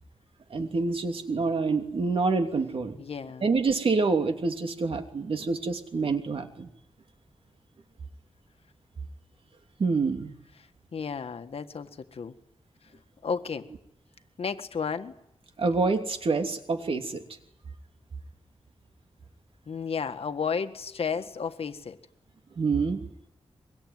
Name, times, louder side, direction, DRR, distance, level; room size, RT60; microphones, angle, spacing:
voice 1, 0.5-3.0 3.4-6.7 9.8-10.3 15.6-17.2 22.6-23.0, right 4 dB, 60° right, 3.0 m, -27 dB
voice 2, 3.0-3.5 10.9-12.3 13.2-13.7 14.4-15.1 19.7-22.0, left 6 dB, 65° left, 1.7 m, -32 dB
24.0 x 23.0 x 9.5 m
wide cardioid pair, 175°, 11 cm